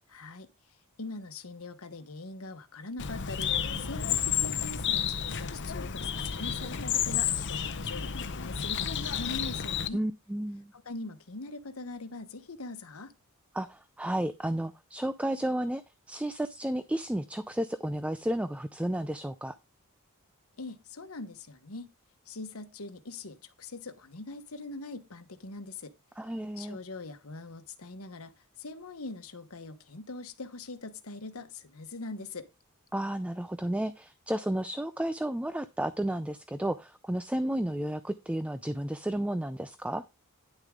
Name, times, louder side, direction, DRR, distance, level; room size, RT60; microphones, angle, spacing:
voice 1, 0.1-0.5 1.0-10.0 10.7-13.1 20.6-21.9 22.3-25.9 26.6-32.5, left 3 dB, 75° left, 1.2 m, -42 dB
Bird, 3.0-9.9, left 8 dB, 55° left, 0.8 m, -31 dB
voice 2, 9.9-10.7 13.5-15.8 16.1-19.5 26.2-26.8 32.9-40.0, right 1 dB, 5° right, 0.4 m, -32 dB
10.0 x 6.5 x 3.7 m
head